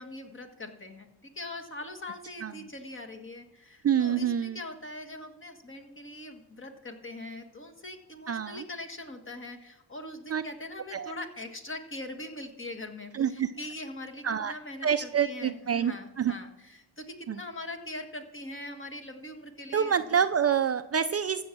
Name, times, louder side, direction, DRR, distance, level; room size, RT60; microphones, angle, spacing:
voice 1, 0.0-20.1, left 1 dB, 30° left, 4 dB, 1.8 m, -42 dB
voice 2, 3.8-4.6 8.3-8.6 10.3-10.4 10.9-11.1 13.1-13.5 14.2-14.5 14.8-16.3 17.3-17.4 19.7-21.4, right 8 dB, 35° right, 9 dB, 0.5 m, -27 dB
15.0 x 7.2 x 6.0 m, 0.97 s
cardioid pair, 95°, 42 cm